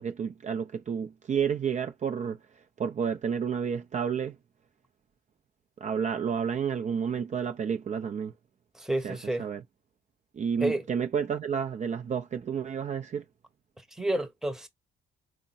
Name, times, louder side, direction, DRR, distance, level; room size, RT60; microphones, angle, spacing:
voice 1, 0.0-2.4 2.8-4.4 5.8-8.3 9.0-9.6 10.3-13.2, right 7 dB, 35° right, 0.5 m, -30 dB
voice 2, 8.8-9.4 10.6-10.8 14.0-14.7, right 1 dB, ahead, 0.9 m, -29 dB
3.6 x 2.0 x 4.0 m
cardioid pair, 90°, 20 cm